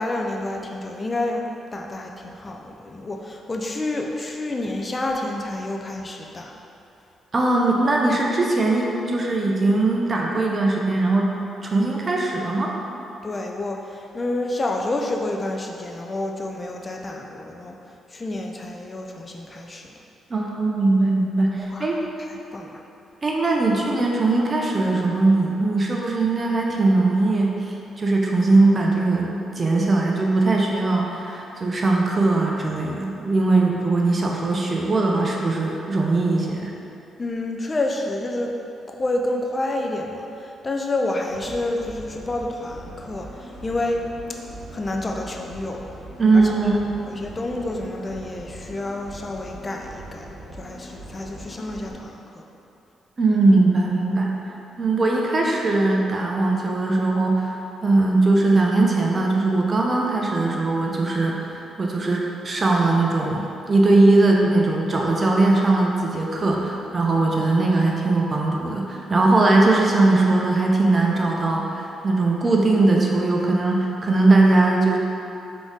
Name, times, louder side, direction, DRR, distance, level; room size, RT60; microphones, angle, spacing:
voice 1, 0.0-1.5 1.7-6.6 13.2-17.8 18.1-19.9 21.6-22.7 37.2-38.5 38.9-44.0 44.7-45.8 46.3-46.5 47.1-52.4 67.1-67.2, left 2 dB, 30° left, 1 dB, 0.4 m, -29 dB
voice 2, 7.3-11.3 11.6-12.8 20.3-22.0 23.2-36.7 46.2-46.8 53.2-54.3 54.8-75.0, right 2 dB, 35° right, -1 dB, 0.5 m, -20 dB
sound 1, 41.3-51.9, right 1 dB, 90° left, 1.3 m, -41 dB
3.9 x 3.7 x 3.6 m, 2.8 s
cardioid pair, 85°, 0 cm